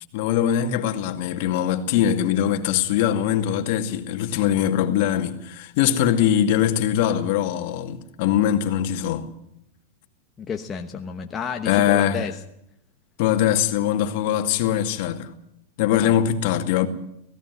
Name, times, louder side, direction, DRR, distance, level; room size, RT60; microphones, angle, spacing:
voice 1, 0.1-9.3 11.7-12.3 13.2-15.3 15.8-16.9, left 10 dB, 50° left, 2.2 m, -22 dB
voice 2, 10.4-12.3 15.9-16.2, left 6 dB, 20° left, 1.1 m, -31 dB
17.0 x 16.5 x 9.5 m
supercardioid pair, 155°, 0 cm